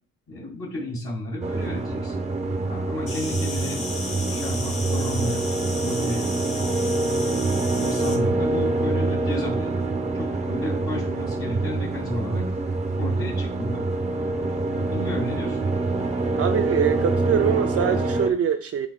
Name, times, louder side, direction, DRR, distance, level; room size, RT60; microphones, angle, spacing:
voice 1, 0.3-2.1 2.6-5.5 5.8-6.4 7.0-12.5 13.0-13.8 14.7-15.6, left 1 dB, 45° left, 2.8 m, -33 dB
sound 1, 1.4-18.3, right 2 dB, 20° right, 1.0 m, -25 dB
Insect, 3.1-8.1, left 3 dB, 70° left, 3.2 m, -35 dB
voice 2, 16.4-18.9, right 8 dB, 50° right, 0.5 m, -24 dB
10.5 x 4.3 x 2.3 m
cardioid pair, 90°, 32 cm